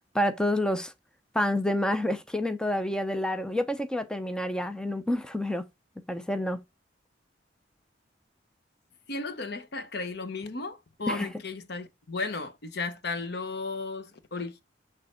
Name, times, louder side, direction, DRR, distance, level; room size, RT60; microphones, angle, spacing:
voice 1, 0.1-0.9 1.3-5.6 6.1-6.6 11.1-11.3, left 1 dB, 5° left, 0.5 m, -28 dB
voice 2, 9.1-14.6, left 3 dB, 60° left, 0.8 m, -34 dB
6.5 x 3.6 x 4.2 m
head